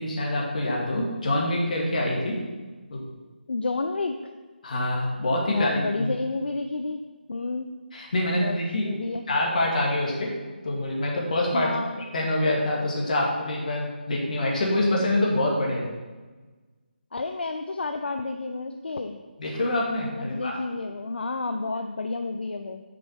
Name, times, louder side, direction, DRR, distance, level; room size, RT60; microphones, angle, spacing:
voice 1, 0.0-2.4 2.9-3.0 4.6-6.1 7.9-8.9 9.3-10.3 10.6-11.7 12.1-15.9 19.4-20.6, left 1 dB, 45° left, -2 dB, 2.2 m, -25 dB
voice 2, 3.5-4.2 5.5-7.0 7.3-7.7 8.4-9.3 11.5-12.0 17.1-19.2 20.2-22.8, left 3 dB, 70° left, 6 dB, 0.6 m, -30 dB
6.9 x 5.1 x 6.4 m, 1.3 s
figure-of-eight pair, 160°, 6 cm